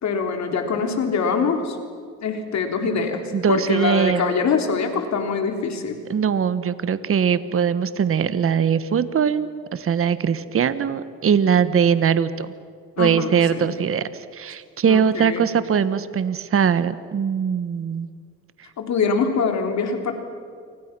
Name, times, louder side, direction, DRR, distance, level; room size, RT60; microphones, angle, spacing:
voice 1, 0.0-1.8 2.2-6.0 13.0-13.7 14.8-15.5 18.8-20.1, left 5 dB, 65° left, 5 dB, 3.7 m, -24 dB
voice 2, 2.8-4.3 6.1-12.5 13.0-18.1, right 7 dB, 45° right, 13 dB, 1.2 m, -21 dB
29.5 x 24.5 x 6.1 m, 2.1 s
cardioid pair, 90°, 30 cm